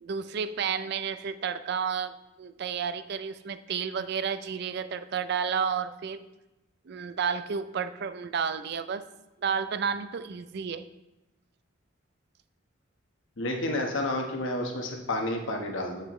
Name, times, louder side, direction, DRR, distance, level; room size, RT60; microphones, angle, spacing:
voice 1, 0.0-6.2 6.9-9.0 9.4-10.8, right 6 dB, 55° right, 13 dB, 0.4 m, -31 dB
voice 2, 13.4-16.0, left 1 dB, 75° left, 2 dB, 1.1 m, -30 dB
7.8 x 6.6 x 3.1 m, 1.0 s
head